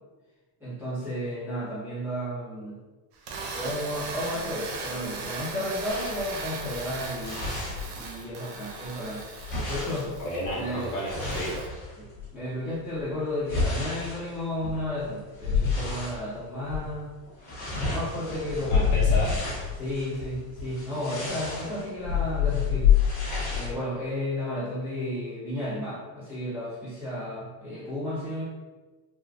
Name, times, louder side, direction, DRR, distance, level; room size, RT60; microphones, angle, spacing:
voice 1, 0.6-2.8 3.5-7.4 7.9-9.2 9.7-10.1 10.5-10.9 12.0-12.1 12.3-17.1 17.9-18.9 19.7-22.9 23.5-28.4, left 1 dB, 5° right, -11 dB, 1.1 m, -33 dB
sound 1, 3.1-11.7, right 4 dB, 65° right, 0.6 m, -38 dB
sound 2, 5.9-8.4 8.7-12.3 12.9-16.2 16.6-16.9 17.2-23.7, left 6 dB, 20° left, 1.0 m, -28 dB
voice 2, 10.2-11.7 18.6-19.4, equal, 55° left, -4 dB, 0.9 m, -32 dB
3.6 x 2.4 x 2.5 m, 1.2 s
cardioid pair, 165°, 45 cm